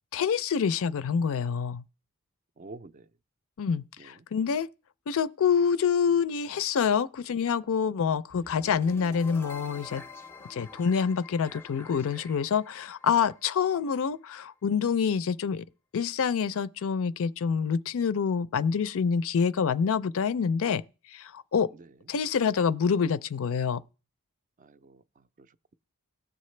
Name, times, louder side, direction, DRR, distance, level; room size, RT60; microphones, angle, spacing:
voice 1, 0.1-1.8 3.6-4.7 5.1-10.0 10.5-15.6 15.9-20.8 21.1-21.7 22.1-23.8, left 6 dB, 65° left, 0.4 m, -26 dB
voice 2, 2.6-3.1 4.0-4.3 21.7-21.9 24.6-25.8, right 3 dB, 35° right, 0.4 m, -49 dB
sound 1, 8.3-14.4, left 3 dB, 10° left, 0.5 m, -47 dB
18.0 x 6.6 x 3.2 m
head